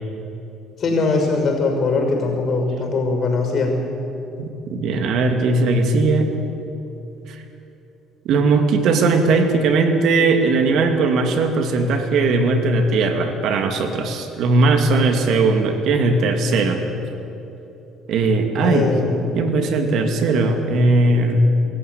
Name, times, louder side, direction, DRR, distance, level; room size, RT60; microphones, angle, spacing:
voice 1, 0.8-3.7 18.6-19.3, left 3 dB, 45° left, 3 dB, 5.9 m, -21 dB
voice 2, 4.4-6.3 7.3-7.4 8.2-16.8 18.1-19.0 19.4-21.4, right 3 dB, 65° right, 5 dB, 2.5 m, -18 dB
24.0 x 14.0 x 9.8 m, 3.0 s
cardioid pair, 105°, 0 cm